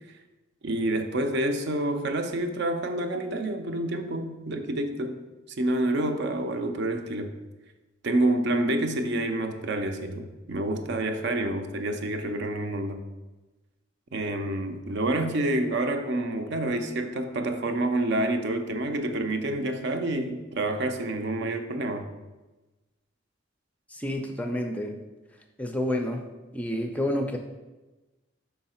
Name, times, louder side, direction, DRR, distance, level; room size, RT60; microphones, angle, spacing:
voice 1, 0.6-5.2 5.6-7.3 8.0-13.1 14.1-22.1, right 1 dB, 60° right, 6 dB, 0.6 m, -28 dB
voice 2, 23.9-24.9 25.6-26.2 26.5-27.4, left 1 dB, 5° left, 4 dB, 0.4 m, -29 dB
5.6 x 4.6 x 4.3 m, 1.1 s
head